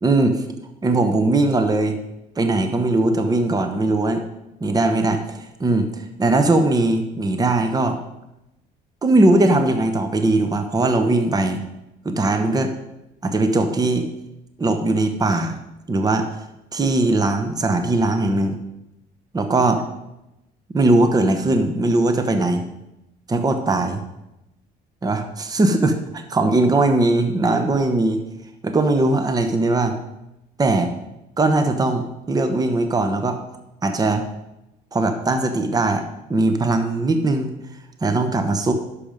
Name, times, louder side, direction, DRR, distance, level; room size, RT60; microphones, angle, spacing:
voice 1, 0.0-0.4 0.8-2.0 2.4-4.2 4.6-8.0 9.0-11.6 12.0-12.7 13.2-14.1 14.6-15.6 15.9-16.3 16.7-18.6 19.3-19.8 20.7-22.6 23.3-24.0 25.0-28.2 28.6-30.0 30.6-30.9 31.4-33.4 33.8-34.2 34.9-36.0 36.3-37.5 38.0-38.7, right 2 dB, 20° right, 7 dB, 1.1 m, -19 dB
10.5 x 6.8 x 5.2 m, 0.91 s
cardioid pair, 110°, 17 cm